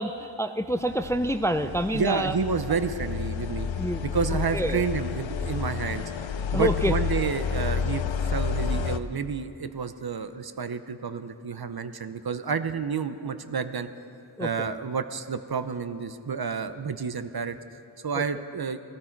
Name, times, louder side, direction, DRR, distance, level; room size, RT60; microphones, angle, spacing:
voice 1, 0.0-2.3 3.8-4.1 4.5-4.8 6.5-6.9 14.4-14.5 18.2-18.3, equal, 5° left, 9 dB, 0.5 m, -27 dB
sound 1, 0.9-9.0, left 6 dB, 70° left, 0.7 m, -30 dB
voice 2, 1.9-3.7 4.0-6.0 6.5-13.9 14.4-17.6 18.0-18.8, right 5 dB, 50° right, 11 dB, 0.8 m, -30 dB
18.0 x 13.5 x 4.5 m, 2.6 s
cardioid pair, 45°, 49 cm